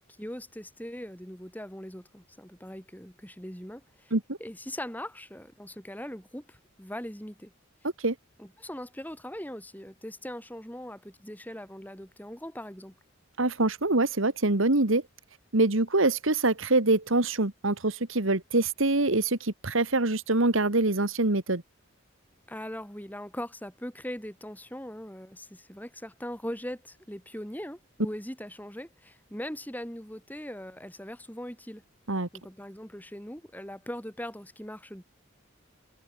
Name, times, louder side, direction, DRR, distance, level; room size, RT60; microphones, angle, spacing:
voice 1, 0.0-4.1 4.4-7.5 8.4-12.9 22.5-31.8 32.3-35.0, equal, 10° left, 5.4 m, -40 dB
voice 2, 13.4-15.0 15.5-21.6 32.1-32.3, right 2 dB, 70° right, 1.9 m, -25 dB
head